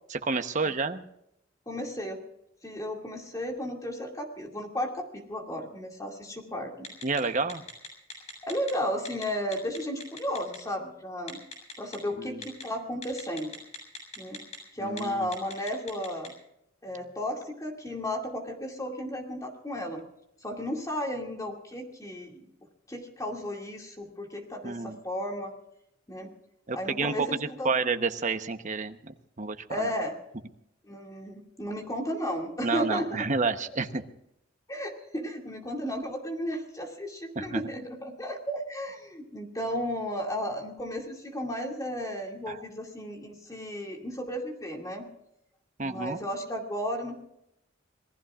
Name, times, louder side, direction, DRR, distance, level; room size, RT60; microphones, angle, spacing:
voice 1, 0.1-1.0 7.0-7.6 12.2-12.4 14.8-15.3 24.6-25.0 26.7-27.3 27.6-29.9 32.6-34.0 37.4-37.6 42.5-42.6 45.8-46.2, right 4 dB, 40° right, 8 dB, 1.0 m, -30 dB
voice 2, 1.7-2.2 2.6-6.9 8.4-11.4 11.8-13.6 14.2-14.4 14.7-16.3 16.8-20.1 20.4-22.4 22.9-25.5 26.1-26.3 26.7-27.7 29.7-30.1 30.8-33.2 34.7-45.1 45.8-47.2, equal, 20° left, 1 dB, 2.4 m, -34 dB
Telephone, 6.8-7.2 7.5-8.7 9.0-9.2 9.5-10.6 11.3-12.0 12.4-12.6 13.0-14.6 14.9-15.0 15.3-16.3, left 3 dB, 35° left, 7.3 m, -40 dB
27.0 x 19.0 x 2.5 m, 0.79 s
head